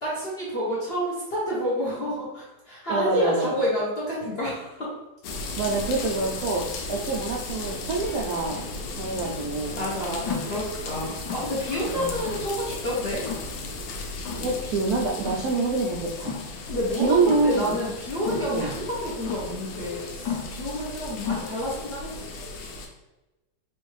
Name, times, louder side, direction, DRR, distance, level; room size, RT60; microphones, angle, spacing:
voice 1, 0.0-4.9 9.8-13.3 16.7-22.1, equal, 50° left, -7 dB, 0.7 m, -29 dB
voice 2, 2.9-3.6 5.6-8.6 9.0-9.8 11.9-12.2 14.4-16.3 16.9-17.8 18.5-18.7, right 3 dB, 85° right, 0 dB, 0.8 m, -26 dB
sound 1, 5.2-22.9, left 3 dB, 90° left, 1.4 m, -36 dB
sound 2, 10.2-21.4, left 6 dB, 65° left, 1.1 m, -37 dB
4.5 x 2.5 x 3.1 m, 1.0 s
omnidirectional pair, 2.1 m